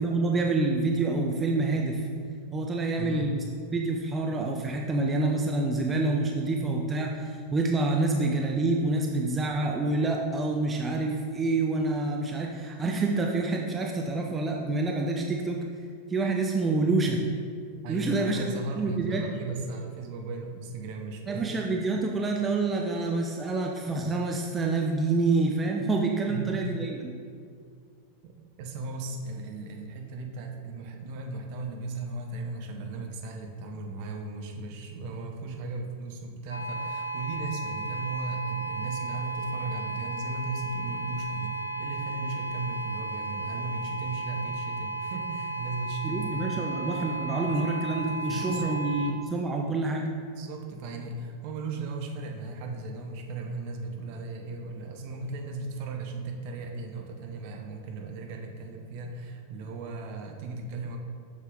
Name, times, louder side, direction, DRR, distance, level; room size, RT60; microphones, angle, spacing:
voice 1, 0.0-2.1 2.5-3.4 3.7-15.6 16.1-17.2 17.9-18.4 18.7-19.2 21.3-27.1 46.0-50.1, right 3 dB, 20° right, 1 dB, 0.6 m, -27 dB
voice 2, 17.8-21.5 26.3-26.6 28.6-46.7 47.4-47.6 48.1-49.1 50.4-61.0, right 3 dB, 45° right, 2 dB, 0.9 m, -36 dB
sound 1, 36.5-49.1, right 2 dB, 80° left, 0.6 m, -34 dB
6.9 x 6.5 x 3.9 m, 2.2 s
figure-of-eight pair, 90°, 0 cm